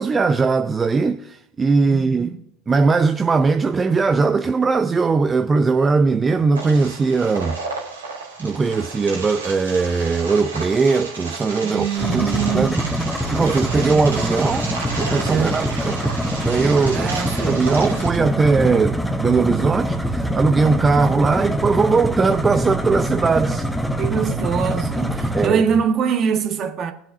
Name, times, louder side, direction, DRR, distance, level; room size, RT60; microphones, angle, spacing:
voice 1, 0.0-2.3 2.7-7.6 8.4-11.9 12.1-12.8 13.3-14.7 15.0-16.1 16.4-17.1 17.5-23.7 25.3-25.6, right 4 dB, 25° right, 0.6 m, -19 dB
voice 2, 1.9-2.4 11.6-12.9 15.3-15.6 16.9-17.7 24.0-26.9, right 7 dB, 45° right, 1.6 m, -23 dB
sound 1, 6.5-18.2, right 3 dB, 90° right, 2.9 m, -33 dB
sound 2, 12.0-25.5, equal, ahead, 1.0 m, -24 dB
21.5 x 7.5 x 2.7 m
figure-of-eight pair, 75°, 0 cm